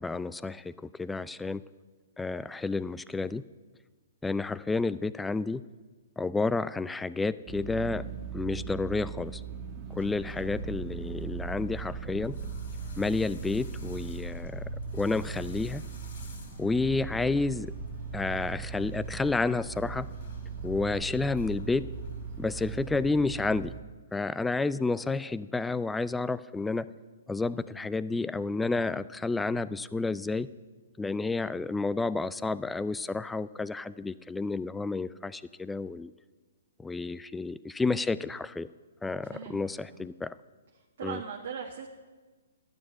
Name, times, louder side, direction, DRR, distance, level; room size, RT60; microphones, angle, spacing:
voice 1, 0.0-1.6 2.2-3.4 4.2-5.6 6.2-8.1 8.3-9.4 9.9-12.4 13.0-15.8 16.6-17.7 18.1-20.1 20.6-21.9 22.4-23.7 24.1-26.9 27.3-30.5 31.0-36.1 36.8-38.7 39.0-40.3 41.0-41.2, left 3 dB, 5° left, 16 dB, 0.3 m, -30 dB
sound 1, 7.5-23.8, right 8 dB, 35° right, 1.3 m, -40 dB
sound 2, 9.9-23.3, left 2 dB, 60° left, 3.0 m, -44 dB
voice 2, 39.2-40.1 40.7-41.9, right 7 dB, 55° right, 1 dB, 1.3 m, -40 dB
12.5 x 9.4 x 5.7 m, 1.3 s
figure-of-eight pair, 125°, 0 cm